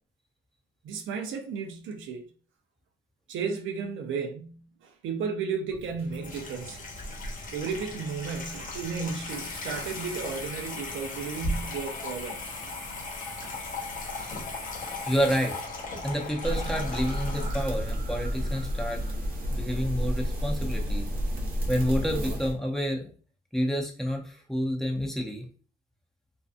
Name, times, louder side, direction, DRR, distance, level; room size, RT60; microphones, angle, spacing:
voice 1, 0.8-2.3 3.3-6.8 7.5-12.4 13.4-13.6, right 5 dB, 80° right, 0.5 m, -34 dB
Water tap faucet / Sink (filling or washing), 5.7-17.9, left 2 dB, 40° left, 0.7 m, -37 dB
voice 2, 15.0-15.5 16.0-19.0 19.5-21.0 21.7-23.0 23.5-25.5, equal, ahead, 0.7 m, -29 dB
sound 1, 16.4-22.5, equal, 45° right, 0.8 m, -30 dB
2.6 x 2.2 x 2.4 m
cardioid pair, 90°, 20 cm